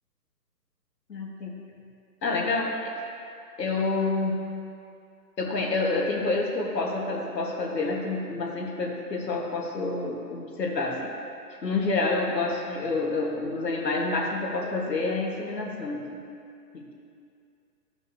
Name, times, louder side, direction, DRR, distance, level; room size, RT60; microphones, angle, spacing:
voice 1, 1.1-1.5 2.2-2.9 3.6-4.4 5.4-11.2 11.6-16.2 16.7-16.9, left 3 dB, 80° left, -1 dB, 1.7 m, -28 dB
14.0 x 5.4 x 2.8 m, 2.5 s
hypercardioid pair, 145°, 49 cm